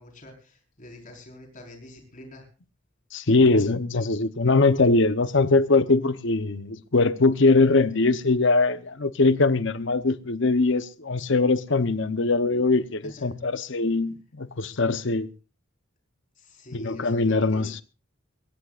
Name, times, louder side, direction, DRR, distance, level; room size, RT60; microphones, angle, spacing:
voice 1, 0.0-2.5 13.2-13.4 16.4-17.7, left 1 dB, 40° left, 4.9 m, -46 dB
voice 2, 3.1-15.3 16.7-17.8, left 3 dB, 60° left, 0.9 m, -22 dB
22.5 x 17.5 x 2.5 m
head